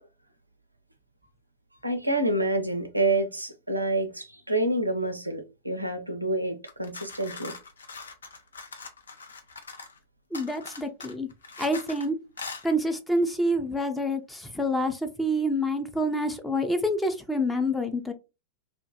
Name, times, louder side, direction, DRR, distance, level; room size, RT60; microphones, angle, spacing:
voice 1, 1.8-7.5, right 2 dB, 85° right, 0.4 m, -28 dB
sound 1, 6.6-10.0 10.3-12.1 12.4-12.6, left 4 dB, 70° left, 0.4 m, -42 dB
voice 2, 10.3-11.3 11.6-12.2 12.6-18.1, equal, 5° left, 0.4 m, -27 dB
2.2 x 2.1 x 2.7 m
figure-of-eight pair, 90°, 0 cm